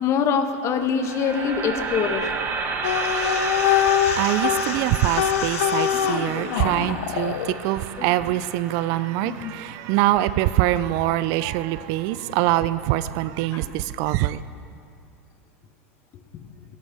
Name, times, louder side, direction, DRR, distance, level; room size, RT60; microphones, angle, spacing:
voice 1, 0.0-2.3 5.9-6.9 8.0-8.1 9.2-9.5 13.5-13.6, left 6 dB, 40° left, 1.2 m, -25 dB
sound 1, 0.8-10.9, right 4 dB, 30° right, 1.7 m, -32 dB
sound 2, 2.8-7.5, left 10 dB, 75° left, 0.8 m, -24 dB
voice 2, 3.9-14.4, right 15 dB, 55° right, 0.4 m, -24 dB
17.0 x 16.5 x 3.5 m
hypercardioid pair, 105°, 8 cm